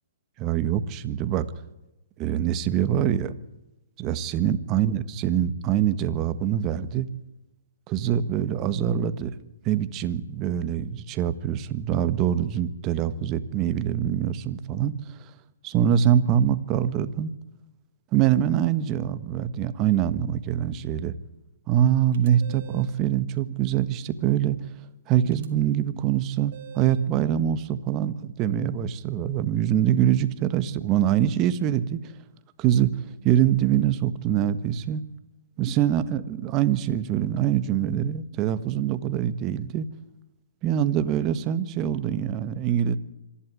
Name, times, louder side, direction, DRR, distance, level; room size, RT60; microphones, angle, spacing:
voice 1, 0.4-1.4 2.2-3.3 4.0-7.1 7.9-9.3 9.6-15.2 15.6-17.3 18.1-21.1 21.7-24.6 25.1-32.0 32.6-32.9 33.2-35.0 35.6-39.9 40.6-43.0, right 10 dB, 30° right, 13 dB, 1.4 m, -24 dB
sound 1, 22.1-23.0 25.3-25.5 26.5-27.1, right 7 dB, 50° right, 2.6 m, -45 dB
26.0 x 11.5 x 9.4 m, 0.98 s
hypercardioid pair, 135°, 0 cm